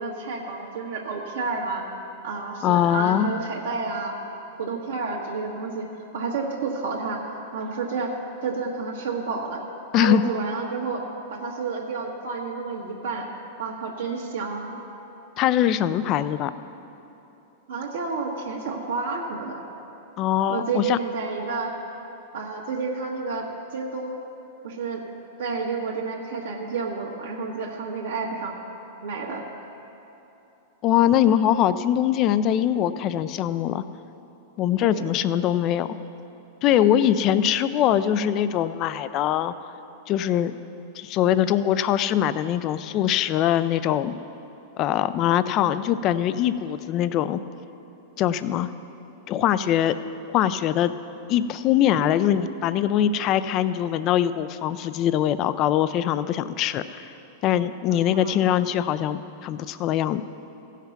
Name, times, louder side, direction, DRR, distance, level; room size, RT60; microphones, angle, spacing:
voice 1, 0.0-1.8 2.2-4.2 4.6-5.9 6.1-7.2 7.5-8.1 8.4-9.6 9.9-11.0 11.3-13.3 13.6-14.8 17.7-19.6 20.5-21.7 22.3-23.5 23.7-24.2 24.6-25.0 25.4-28.5 29.0-29.4 34.8-35.1 36.7-36.9 57.9-58.5, right 4 dB, 75° right, -1 dB, 1.4 m, -30 dB
voice 2, 2.6-3.3 9.9-10.3 15.4-16.5 20.2-21.0 30.8-33.8 34.6-35.9 36.6-39.7 40.1-40.5 41.0-44.1 44.8-47.4 48.2-48.7 49.3-49.9 50.3-50.9 51.3-57.1 57.4-60.2, left 10 dB, 40° left, 13 dB, 0.4 m, -22 dB
15.0 x 5.8 x 5.9 m, 2.9 s
hypercardioid pair, 110°, 0 cm